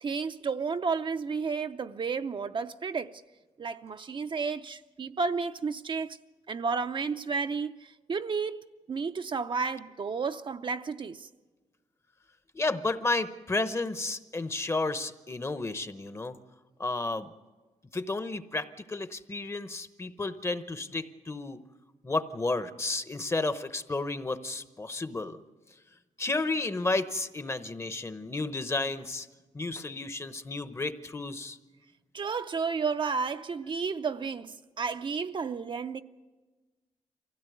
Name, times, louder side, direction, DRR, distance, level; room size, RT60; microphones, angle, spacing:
voice 1, 0.0-3.1 3.6-6.2 6.5-11.3 32.1-36.0, right 5 dB, 40° right, 0.6 m, -32 dB
voice 2, 12.5-16.4 16.8-17.3 17.9-21.6 22.0-25.4 26.2-29.3 29.5-31.6, left 2 dB, 20° left, 0.9 m, -32 dB
23.5 x 16.5 x 9.2 m
wide cardioid pair, 130°, 12 cm